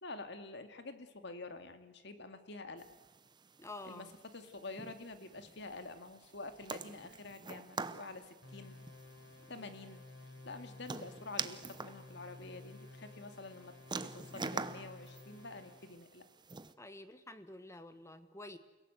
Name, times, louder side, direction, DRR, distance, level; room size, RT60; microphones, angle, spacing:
voice 1, 0.0-2.9 3.8-8.9 9.5-10.0 10.4-16.2, left 3 dB, 65° left, 8 dB, 2.1 m, -48 dB
sound 1, 2.8-16.7, right 4 dB, 25° right, 0.8 m, -46 dB
voice 2, 3.6-4.1 9.6-9.7 16.8-18.6, left 2 dB, 15° left, 11 dB, 1.3 m, -49 dB
sound 2, 8.4-16.0, left 2 dB, 85° left, 5.7 m, -54 dB
29.5 x 17.0 x 8.0 m, 1.1 s
head